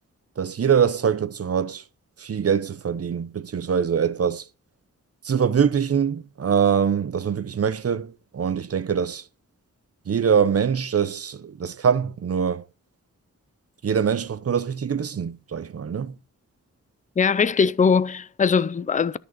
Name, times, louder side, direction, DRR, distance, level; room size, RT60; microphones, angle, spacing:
voice 1, 0.4-1.8 2.2-4.4 5.2-9.2 10.1-12.6 13.8-16.1, right 7 dB, 50° right, 0.8 m, -23 dB
voice 2, 17.2-19.2, left 6 dB, 25° left, 0.5 m, -21 dB
13.5 x 6.6 x 5.7 m
wide cardioid pair, 120°, 31 cm